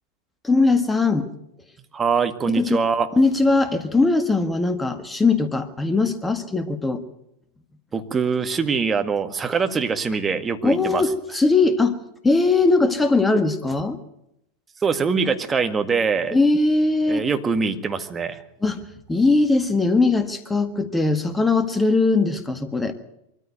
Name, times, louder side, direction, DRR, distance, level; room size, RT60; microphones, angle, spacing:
voice 1, 0.4-1.3 2.5-2.8 3.1-7.0 10.6-12.0 12.2-14.0 16.3-17.2 18.6-18.8 19.1-22.9, left 3 dB, 10° left, 9 dB, 1.8 m, -20 dB
voice 2, 1.9-3.1 7.9-11.1 14.8-16.4 17.1-18.4, right 5 dB, 20° right, 7 dB, 1.9 m, -23 dB
23.5 x 14.5 x 9.4 m, 0.81 s
figure-of-eight pair, 90°, 0 cm